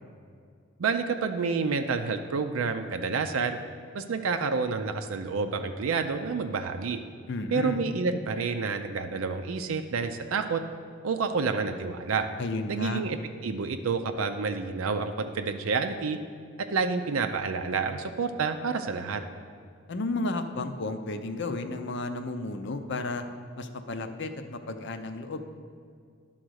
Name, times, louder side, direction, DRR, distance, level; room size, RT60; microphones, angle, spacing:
voice 1, 0.8-3.6 3.9-7.0 7.5-10.6 11.0-12.3 12.7-16.2 16.6-19.2, right 4 dB, 85° right, 6 dB, 0.5 m, -29 dB
voice 2, 7.3-7.8 12.4-13.0 19.9-23.2 23.6-25.4, left 2 dB, 60° left, 8 dB, 0.6 m, -32 dB
11.0 x 3.9 x 6.3 m, 2.2 s
head